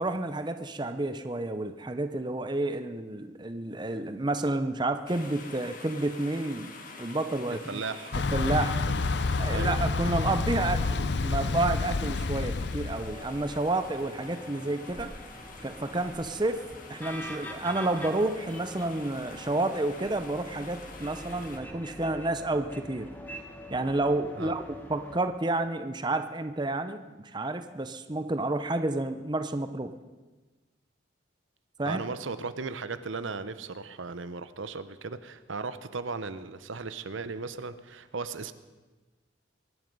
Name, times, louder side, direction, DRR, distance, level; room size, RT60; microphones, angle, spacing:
voice 1, 0.0-6.7 7.0-7.8 8.3-8.8 9.4-15.1 15.6-16.6 16.9-23.1 23.7-29.9 31.8-32.0, right 2 dB, 20° right, 9 dB, 0.6 m, -30 dB
sound 1, 5.1-21.6, left 3 dB, 45° left, 1.7 m, -47 dB
voice 2, 7.5-8.1 8.9-9.1 9.5-9.8 24.4-24.6 31.9-38.5, right 4 dB, 75° right, 12 dB, 0.8 m, -36 dB
Thunder / Bicycle, 8.1-13.2, left 3 dB, 60° left, 0.5 m, -28 dB
sound 2, 12.9-25.2, left 1 dB, 10° left, 1.4 m, -45 dB
23.5 x 11.0 x 5.4 m, 1.2 s
head